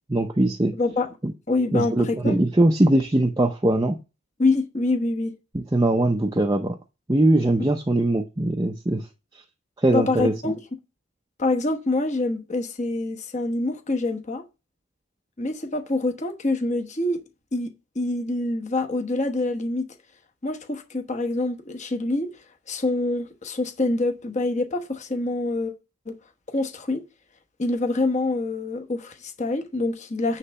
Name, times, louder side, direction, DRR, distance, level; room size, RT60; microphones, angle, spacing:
voice 1, 0.1-0.8 1.2-1.3 1.7-4.0 5.5-6.7 7.1-9.0 9.8-10.5, right 1 dB, 20° right, 0.6 m, -21 dB
voice 2, 0.7-1.1 1.5-2.4 4.4-5.3 9.9-10.6 11.4-14.4 15.4-17.2 17.5-19.9 20.4-22.3 22.7-25.7 26.1-26.2 26.5-27.0 27.6-30.4, left 2 dB, 35° left, 1.1 m, -25 dB
9.8 x 3.3 x 6.9 m
head